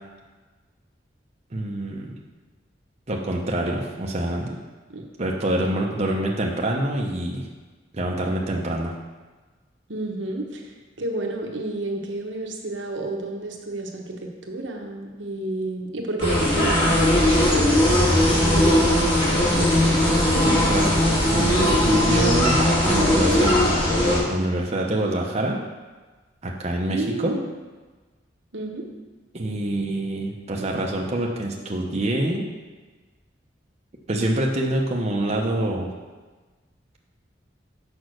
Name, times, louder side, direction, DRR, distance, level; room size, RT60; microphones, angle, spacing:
voice 1, 1.5-2.1 3.1-4.6 5.2-7.5 7.9-8.9 20.5-21.0 21.3-23.6 24.0-25.6 26.4-27.4 29.3-32.5 34.1-35.9, right 1 dB, 35° right, -1 dB, 0.8 m, -26 dB
voice 2, 9.9-20.5 26.9-27.5 28.5-28.9, right 2 dB, 80° right, 1 dB, 1.1 m, -31 dB
sound 1, 16.2-24.2, left 1 dB, 30° left, 2.4 m, -19 dB
6.2 x 5.3 x 6.4 m, 1.3 s
head